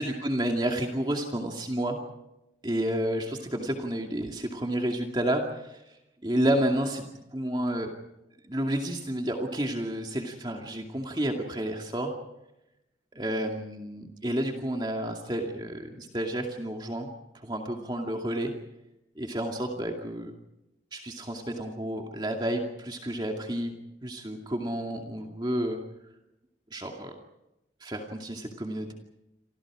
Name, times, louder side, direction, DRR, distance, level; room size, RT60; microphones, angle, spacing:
voice 1, 0.0-2.0 2.6-5.8 6.2-7.9 8.4-12.1 13.1-17.1 17.3-18.5 19.2-20.3 20.9-23.7 24.0-25.8 26.7-27.1 27.8-28.9, right 1 dB, 25° right, 2 dB, 2.4 m, -30 dB
29.0 x 26.5 x 5.0 m, 0.90 s
head